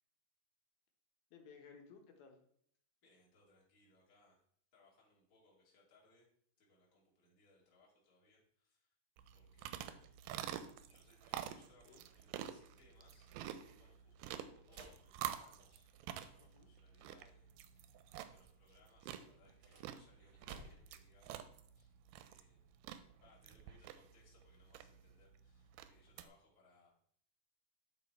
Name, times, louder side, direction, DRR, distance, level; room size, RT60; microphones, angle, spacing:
voice 1, 1.3-2.4 11.8-12.0 16.4-16.7, left 5 dB, 80° left, 2 dB, 2.9 m, -58 dB
voice 2, 3.0-4.4 4.7-6.3 6.6-8.9 9.3-10.0 10.9-13.3 13.6-21.5 21.7-26.9, left 2 dB, 25° left, -4 dB, 2.2 m, -70 dB
sound 1, 9.2-26.3, right 11 dB, 85° right, 2.4 m, -48 dB
sound 2, 14.7-16.1 19.4-21.1, right 3 dB, 60° right, 1.4 m, -58 dB
11.5 x 4.1 x 4.4 m, 0.63 s
omnidirectional pair, 4.3 m